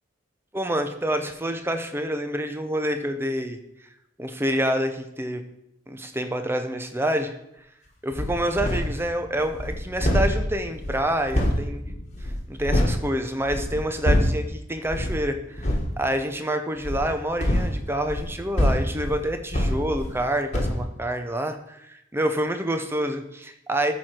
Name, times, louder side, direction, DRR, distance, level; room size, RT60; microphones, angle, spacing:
voice 1, 0.5-3.6 4.2-5.4 5.9-7.4 8.0-11.8 12.5-15.7 16.0-23.9, right 1 dB, 10° right, 7 dB, 0.7 m, -27 dB
sound 1, 8.1-9.0 9.4-13.0 13.4-14.5 14.9-15.2 15.5-15.9 16.8-20.3 20.5-20.8, equal, 35° left, 1.5 m, -25 dB
13.5 x 4.6 x 4.5 m, 0.81 s
head